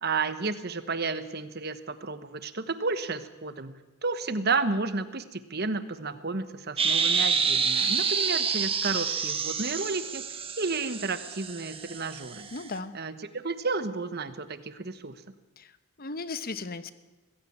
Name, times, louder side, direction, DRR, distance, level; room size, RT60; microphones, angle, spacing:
voice 1, 0.0-3.7 4.0-10.3 10.6-12.5 12.9-15.2, right 4 dB, 50° right, 12 dB, 1.2 m, -32 dB
sound 1, 6.8-12.6, right 6 dB, 25° right, 1.4 m, -28 dB
voice 2, 12.5-12.9 15.6-15.7 16.0-16.9, left 3 dB, 45° left, 12 dB, 1.0 m, -36 dB
20.5 x 15.5 x 8.8 m, 1.1 s
head